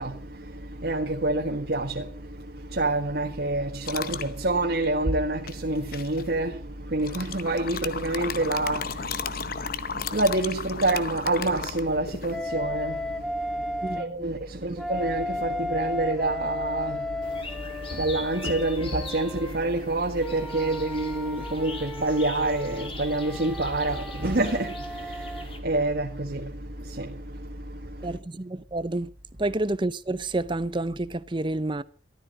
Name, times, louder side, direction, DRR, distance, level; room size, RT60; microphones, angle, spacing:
voice 1, 0.0-28.2, right 2 dB, 60° right, 1.5 m, -28 dB
sound 1, 3.8-4.3 5.5-6.2 7.0-12.4, left 6 dB, 50° left, 0.8 m, -34 dB
Wind instrument woodwind instrument, 12.3-14.1 14.8-19.5 20.2-25.4, left 1 dB, ahead, 0.9 m, -35 dB
voice 2, 13.8-14.3 28.0-29.1 29.4-31.8, right 2 dB, 25° right, 0.7 m, -29 dB
sound 2, 17.2-25.6, left 3 dB, 30° left, 2.0 m, -42 dB
14.5 x 12.5 x 5.3 m
head